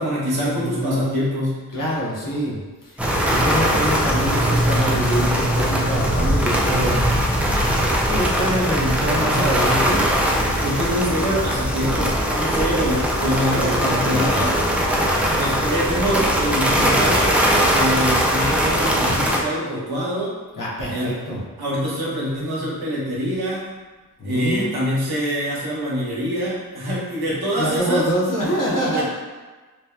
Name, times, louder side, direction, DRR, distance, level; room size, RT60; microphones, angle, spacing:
voice 1, 0.0-1.6 6.8-7.2 10.6-14.5 15.4-17.3 17.7-20.4 20.8-21.2 21.6-23.7 24.2-28.1 28.9-29.0, equal, 80° right, -6 dB, 0.9 m, -25 dB
voice 2, 0.5-1.1 1.7-7.0 8.1-10.0 13.4-14.9 20.6-21.4 24.2-24.7 27.6-29.0, equal, 55° left, -6 dB, 0.9 m, -25 dB
sound 1, 3.0-19.4, equal, 5° right, 0.4 m, -20 dB
3.1 x 2.2 x 2.3 m, 1.3 s
cardioid pair, 40°, 37 cm